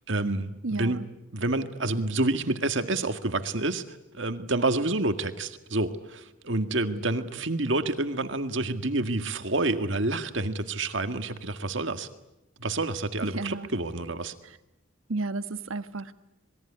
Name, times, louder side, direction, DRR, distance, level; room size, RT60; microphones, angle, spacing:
voice 1, 0.1-1.0 1.3-12.1 12.6-14.3, right 2 dB, 65° right, 8 dB, 1.8 m, -28 dB
voice 2, 0.6-1.1 13.2-13.7 14.4-14.6 15.1-16.1, right 3 dB, 80° right, 10 dB, 1.4 m, -32 dB
27.0 x 21.0 x 9.9 m, 0.96 s
head